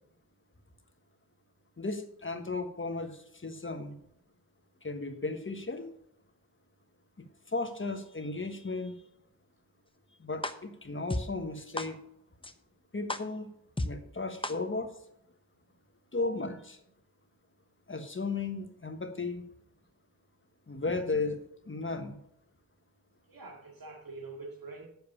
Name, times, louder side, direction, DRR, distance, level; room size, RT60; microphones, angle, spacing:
voice 1, 1.8-4.0 4.8-5.9 7.2-9.0 10.2-12.0 12.9-13.5 13.8-14.9 16.1-16.8 17.9-19.4 20.7-21.4 21.6-22.2, left 3 dB, 35° left, 1.4 m, -35 dB
sound 1, 10.4-10.5 11.1-11.2 11.8-11.9 12.4-12.5 13.1-13.2 13.8-13.9 14.4-14.5, left 2 dB, 15° left, 0.8 m, -31 dB
voice 2, 16.1-16.5 23.3-24.9, right 3 dB, 80° right, 2.1 m, -44 dB
7.8 x 7.0 x 7.1 m
cardioid pair, 50°, 35 cm